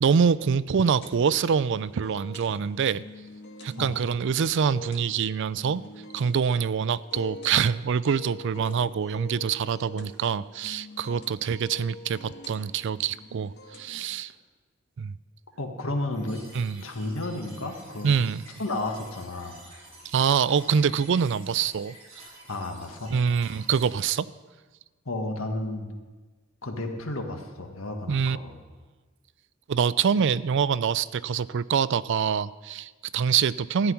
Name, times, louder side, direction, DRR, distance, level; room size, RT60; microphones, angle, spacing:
voice 1, 0.0-3.0 3.6-5.8 6.1-14.3 15.0-15.1 16.5-16.8 18.0-18.5 20.0-22.0 23.1-24.3 28.1-28.4 29.7-33.9, right 6 dB, 60° right, 18 dB, 0.4 m, -25 dB
sound 1, 0.7-14.1, left 2 dB, 60° left, 1.7 m, -46 dB
voice 2, 15.6-16.4 16.8-18.1 18.6-19.6 22.5-23.1 25.0-25.9 26.6-28.6, left 2 dB, 80° left, 4 dB, 1.6 m, -32 dB
sound 2, 16.1-23.9, right 1 dB, 35° right, 5.0 m, -50 dB
14.0 x 6.0 x 9.7 m, 1.3 s
head